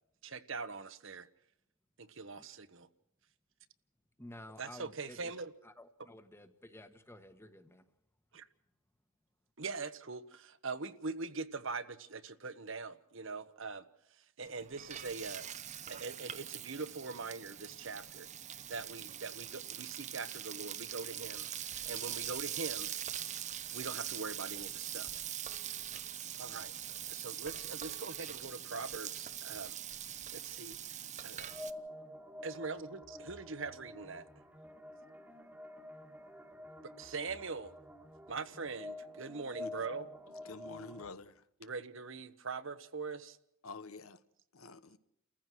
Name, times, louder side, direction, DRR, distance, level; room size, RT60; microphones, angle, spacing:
voice 1, 0.2-1.3 2.0-2.9 4.6-5.5 8.3-8.5 9.6-13.8 14.4-18.3 18.7-22.9 23.7-25.2 26.4-26.7 27.1-29.7 30.3-30.8 31.2-31.5 32.4-34.3 37.0-37.7 38.3-40.1 41.6-43.4, right 4 dB, 60° right, 1.1 m, -42 dB
voice 2, 4.2-5.3 5.6-7.8, left 1 dB, 10° left, 1.3 m, -52 dB
Frying (food), 14.4-31.7, right 10 dB, 30° right, 0.7 m, -43 dB
sound 1, 31.5-41.1, left 1 dB, 10° right, 1.6 m, -49 dB
voice 3, 40.4-41.4 43.6-44.2 44.5-45.0, left 3 dB, 75° left, 1.1 m, -48 dB
29.5 x 15.0 x 6.2 m
head